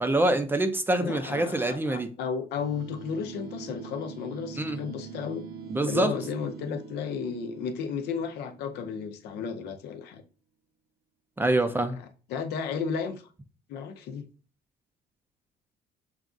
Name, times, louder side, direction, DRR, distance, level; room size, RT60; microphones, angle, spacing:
voice 1, 0.0-2.1 4.6-4.8 5.7-6.1 11.4-12.0, right 2 dB, 10° right, 0.4 m, -25 dB
voice 2, 1.0-5.4 5.8-10.2 12.0-13.2 13.7-14.3, left 6 dB, 80° left, 0.6 m, -33 dB
sound 1, 2.5-9.2, right 6 dB, 70° right, 0.8 m, -43 dB
6.0 x 2.4 x 2.5 m
cardioid pair, 110°, 17 cm